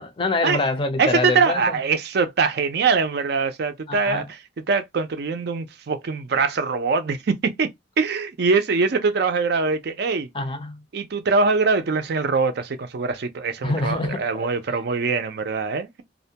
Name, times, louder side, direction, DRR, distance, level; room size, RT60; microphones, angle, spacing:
voice 1, 0.0-1.8 3.9-4.2 10.3-10.8 13.6-14.5, left 2 dB, 30° left, 0.5 m, -25 dB
voice 2, 1.0-7.7 8.0-10.3 10.9-16.0, right 4 dB, 60° right, 0.5 m, -23 dB
2.5 x 2.1 x 2.7 m
head